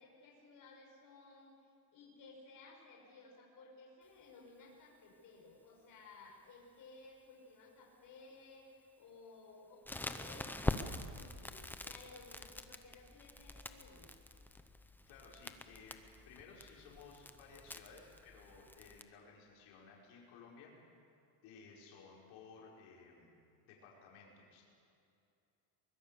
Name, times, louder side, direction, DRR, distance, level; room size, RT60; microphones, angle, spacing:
voice 1, 0.0-14.2, left 3 dB, 45° left, -1 dB, 5.8 m, -58 dB
Crackle, 9.9-19.0, left 2 dB, 5° left, 0.6 m, -45 dB
voice 2, 15.1-20.7 21.4-23.3 23.6-24.6, left 5 dB, 90° left, -3 dB, 5.5 m, -57 dB
24.0 x 22.0 x 6.9 m, 2.6 s
cardioid pair, 155°, 45 cm